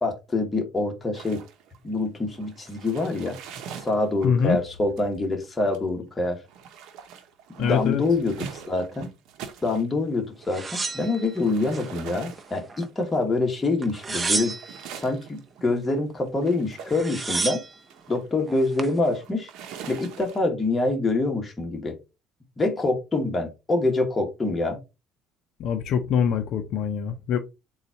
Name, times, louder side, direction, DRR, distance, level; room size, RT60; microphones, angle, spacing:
voice 1, 0.0-1.4 1.8-3.4 3.8-6.4 7.6-9.1 9.6-14.5 15.0-17.6 18.1-19.5 19.9-22.0 22.6-24.8, left 2 dB, 20° left, 1.2 m, -25 dB
sound 1, 1.1-10.0 10.3-20.4, right 7 dB, 70° right, 0.8 m, -44 dB
voice 2, 4.2-4.6 7.6-8.0 25.6-27.4, left 7 dB, 60° left, 0.6 m, -24 dB
sound 2, 10.5-11.9 12.3-13.1 13.8-14.9 16.5-16.6 16.8-17.8 18.5-19.0, right 3 dB, 20° right, 0.6 m, -31 dB
3.8 x 2.4 x 4.2 m
cardioid pair, 110°, 0 cm